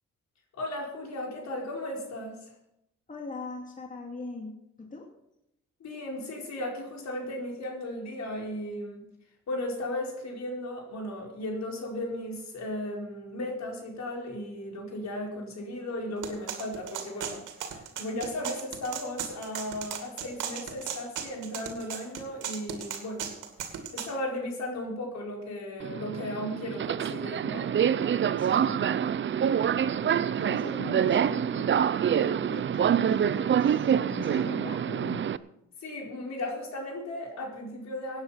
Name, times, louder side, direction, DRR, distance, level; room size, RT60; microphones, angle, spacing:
voice 1, 0.5-2.5 5.8-9.1 9.5-17.4 17.7-23.3 23.6-27.7 30.3-30.5 35.8-38.2, left 1 dB, 65° left, 0 dB, 4.7 m, -36 dB
voice 2, 3.1-4.5 4.8-5.1 28.4-28.9 30.0-35.3, left 3 dB, 25° left, 0 dB, 2.6 m, -41 dB
sound 1, 16.2-24.1, right 8 dB, 85° right, 2.5 m, -37 dB
Subway metro underground, 25.8-35.4, right 8 dB, 40° right, 0.6 m, -26 dB
17.0 x 9.6 x 5.7 m, 0.84 s
cardioid pair, 90°, 30 cm